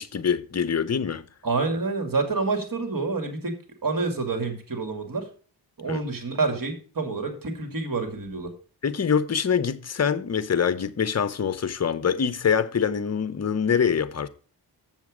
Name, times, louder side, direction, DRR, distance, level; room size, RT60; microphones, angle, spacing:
voice 1, 0.0-1.2 5.9-6.0 8.8-14.3, left 7 dB, 40° left, 0.8 m, -24 dB
voice 2, 1.4-3.5 3.8-5.3 5.8-8.5, right 3 dB, 50° right, 2.3 m, -28 dB
7.3 x 7.2 x 4.9 m
cardioid pair, 60°, 41 cm